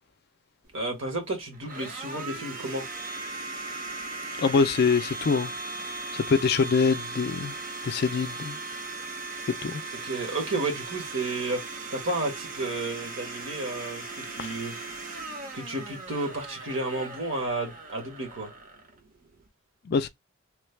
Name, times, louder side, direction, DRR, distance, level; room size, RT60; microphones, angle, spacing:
Domestic sounds home sounds, 0.7-19.5, right 3 dB, 40° right, 0.7 m, -38 dB
voice 1, 0.7-2.8 10.0-11.6 11.9-14.7 15.5-18.5, right 2 dB, 65° right, 1.2 m, -32 dB
voice 2, 4.4-5.5 6.3-7.5 7.8-8.6 9.6-9.8 14.4-14.5 19.9-20.1, left 5 dB, 45° left, 0.3 m, -24 dB
3.1 x 2.2 x 3.1 m
head